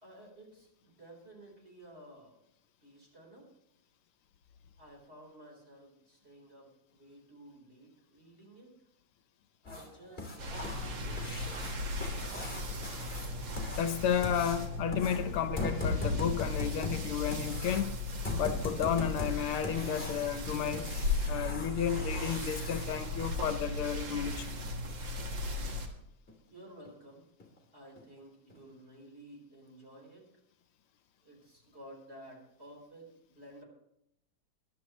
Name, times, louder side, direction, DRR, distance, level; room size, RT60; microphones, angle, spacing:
voice 1, 0.0-2.4 2.8-3.5 4.8-8.7 9.6-12.6 26.5-27.2 27.7-30.2 31.2-33.6, right 1 dB, 25° right, 4.7 m, -54 dB
sound 1, 9.7-22.9 25.2-25.3 25.7-25.8 26.3-26.4 26.9-27.0 27.4-27.6 28.0-28.1 28.5-28.6, left 3 dB, 25° left, 3.2 m, -40 dB
sound 2, 10.4-25.9, left 2 dB, 60° right, 2.4 m, -37 dB
voice 2, 13.8-17.9 18.4-20.9 21.3-24.5, left 8 dB, 75° left, 1.7 m, -32 dB
22.5 x 11.5 x 3.2 m
omnidirectional pair, 2.4 m